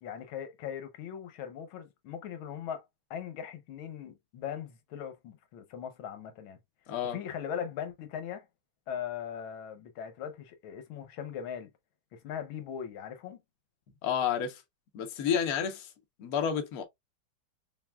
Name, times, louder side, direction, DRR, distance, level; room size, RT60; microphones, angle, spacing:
voice 1, 0.0-2.8 3.1-6.6 7.1-8.5 8.9-11.7 12.1-13.4, left 8 dB, 85° left, 1.6 m, -39 dB
voice 2, 6.9-7.2 14.0-14.6 14.9-15.9 16.2-16.8, left 8 dB, 55° left, 1.2 m, -30 dB
5.8 x 2.4 x 2.2 m
omnidirectional pair, 2.2 m